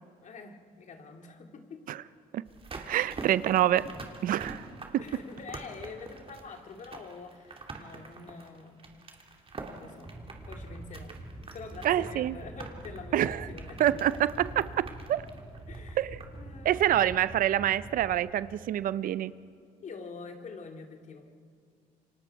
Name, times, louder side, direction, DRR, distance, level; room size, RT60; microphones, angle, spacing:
voice 1, 0.2-1.8 5.0-8.9 9.7-10.1 10.5-11.2 11.5-13.8 15.7-16.1 16.3-16.9 19.8-21.3, left 4 dB, 55° left, 4 dB, 2.5 m, -45 dB
sound 1, 2.5-16.5 16.8-16.9, right 3 dB, 35° right, 2.5 m, -46 dB
voice 2, 2.8-3.9 4.2-4.7 11.8-12.4 13.1-13.5 13.8-15.3 16.0-16.2 16.6-19.3, right 12 dB, 65° right, 17 dB, 0.6 m, -26 dB
sound 2, 10.0-18.2, right 1 dB, 20° right, 4.3 m, -45 dB
28.0 x 24.5 x 4.7 m, 2.3 s
supercardioid pair, 70°, 15 cm